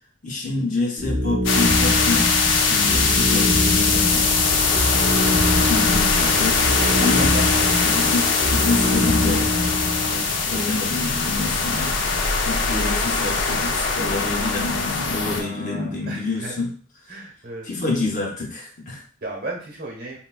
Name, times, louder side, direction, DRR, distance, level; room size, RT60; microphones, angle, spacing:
voice 1, 0.2-4.3 5.7-6.7 7.0-7.4 7.8-9.5 10.1-12.0 12.4-16.7 17.6-19.0, left 3 dB, 40° left, -1 dB, 0.8 m, -27 dB
sound 1, 1.0-10.2, left 1 dB, 15° right, 0.8 m, -24 dB
sound 2, 1.4-15.4, left 4 dB, 85° left, 0.5 m, -21 dB
voice 2, 15.4-16.6 17.1-17.7 19.2-20.2, right 2 dB, 50° right, 0 dB, 0.9 m, -34 dB
3.9 x 2.2 x 2.2 m, 0.43 s
head